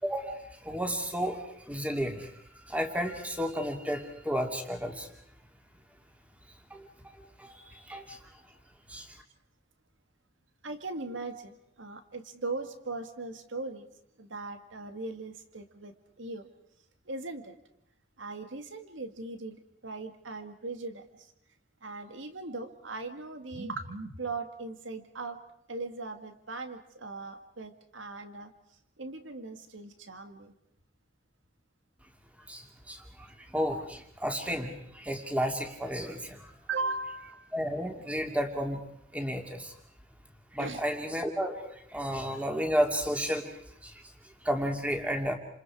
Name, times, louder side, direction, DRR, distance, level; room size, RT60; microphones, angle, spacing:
voice 1, 0.0-2.3 2.7-5.1 6.7-6.9 7.4-8.2 8.9-9.1 32.5-36.5 37.5-38.8 39.1-39.7 40.5-43.5 43.8-43.9 44.4-45.3, equal, 5° right, 3 dB, 2.6 m, -32 dB
voice 2, 10.6-13.9 14.2-16.5 17.1-17.5 18.2-21.1 21.8-25.4 25.7-28.5 29.0-30.5 36.7-37.5 40.6-40.8, right 3 dB, 85° right, 7 dB, 2.1 m, -39 dB
29.5 x 27.0 x 4.9 m, 0.75 s
head